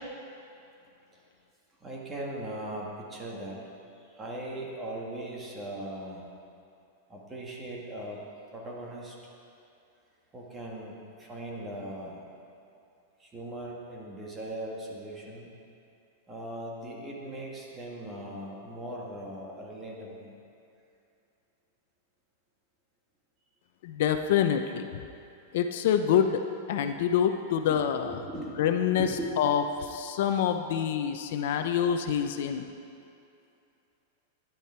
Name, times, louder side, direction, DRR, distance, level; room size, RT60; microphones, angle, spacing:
voice 1, 1.8-3.6 4.1-6.3 7.1-8.2 8.5-9.2 10.3-12.2 13.2-15.6 16.3-20.3 27.7-28.6 29.0-29.2, right 1 dB, 15° right, -3 dB, 1.9 m, -39 dB
voice 2, 23.8-24.8 25.5-26.4 26.7-28.1 28.6-29.1 29.4-32.7, left 8 dB, 60° left, 7 dB, 0.7 m, -26 dB
13.5 x 10.5 x 4.6 m, 2.6 s
supercardioid pair, 160°, 0 cm